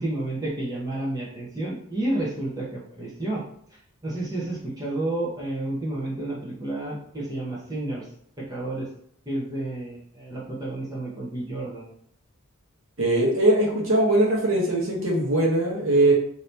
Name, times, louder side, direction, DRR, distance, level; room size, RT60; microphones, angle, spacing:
voice 1, 0.0-3.4 4.0-8.1 8.4-8.9 9.3-11.9, right 1 dB, 15° right, -5 dB, 0.8 m, -30 dB
voice 2, 13.0-16.1, right 1 dB, 60° right, -3 dB, 1.1 m, -21 dB
2.8 x 2.8 x 3.3 m, 0.65 s
head